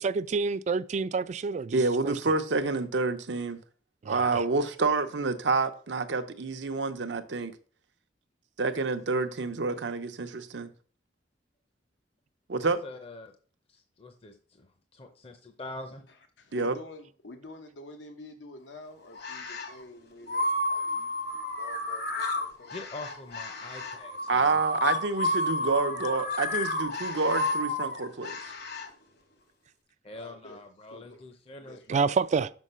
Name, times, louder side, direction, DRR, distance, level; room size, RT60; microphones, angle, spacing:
voice 1, 0.0-1.8 2.0-2.1 4.1-4.4 31.9-32.5, right 5 dB, 40° right, 0.3 m, -28 dB
voice 2, 1.7-3.6 4.1-7.5 8.6-10.3 10.5-10.6 12.5-12.8 16.5-16.8 24.3-28.4, right 3 dB, 75° right, 0.7 m, -28 dB
voice 3, 12.6-13.3 13.7-16.0 22.7-24.6 30.0-32.1, left 2 dB, 35° left, 0.6 m, -44 dB
voice 4, 16.4-22.8 28.4-28.6 30.1-30.6 30.9-31.2 31.6-31.9, left 2 dB, 90° left, 0.9 m, -48 dB
sound 1, 19.2-19.8 20.3-28.9, left 2 dB, 60° left, 1.1 m, -31 dB
6.2 x 4.6 x 5.5 m
head